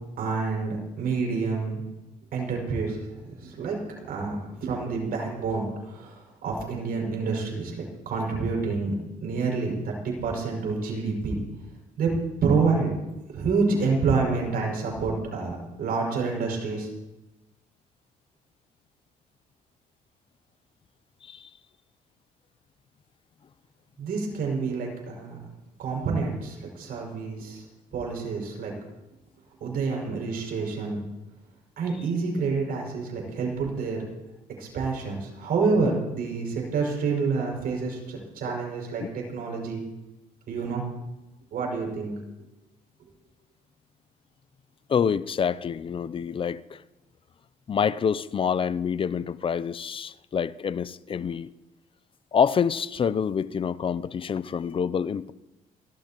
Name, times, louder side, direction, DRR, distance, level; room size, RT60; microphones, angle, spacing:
voice 1, 0.2-1.8 2.3-9.0 9.2-11.5 12.0-12.1 12.4-12.9 13.3-16.9 24.0-25.4 25.8-27.6 27.9-28.7 29.6-31.0 31.8-34.0 34.6-39.8 40.5-40.8 41.5-42.1, right 4 dB, 60° right, 6.1 m, -28 dB
voice 2, 44.9-46.8 47.7-51.5 52.3-55.3, left 7 dB, 30° left, 0.5 m, -27 dB
29.0 x 13.0 x 3.0 m
cardioid pair, 110°, 17 cm